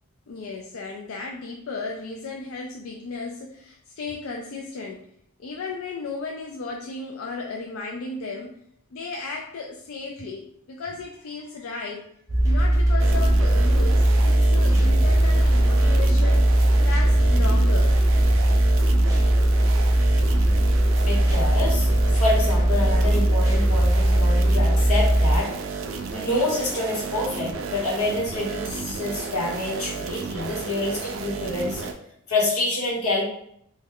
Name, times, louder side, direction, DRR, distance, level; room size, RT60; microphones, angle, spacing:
voice 1, 0.3-5.1 5.4-8.6 8.9-18.0, left 3 dB, 65° left, 1 dB, 0.3 m, -35 dB
sound 1, 12.3-25.4, right 1 dB, 15° right, 0.6 m, -19 dB
sound 2, 13.0-31.9, right 4 dB, 60° right, 0.4 m, -33 dB
voice 2, 21.1-25.5 26.1-31.9 32.3-33.2, left 2 dB, 90° left, -3 dB, 1.2 m, -27 dB
3.0 x 2.2 x 3.6 m, 0.71 s
head